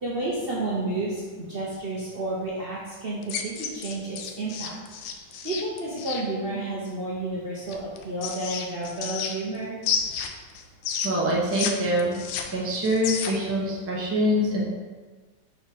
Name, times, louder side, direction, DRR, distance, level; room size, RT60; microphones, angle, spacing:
voice 1, 0.0-4.8 5.4-9.8, right 2 dB, 45° right, -7 dB, 0.8 m, -31 dB
sound 1, 3.2-6.2 7.7-9.6 9.8-11.7 12.0-13.5, left 7 dB, 85° left, 1.3 m, -31 dB
voice 2, 11.0-12.2 12.5-14.6, equal, 10° right, -5 dB, 0.6 m, -24 dB
4.4 x 4.3 x 5.3 m, 1.4 s
omnidirectional pair, 2.0 m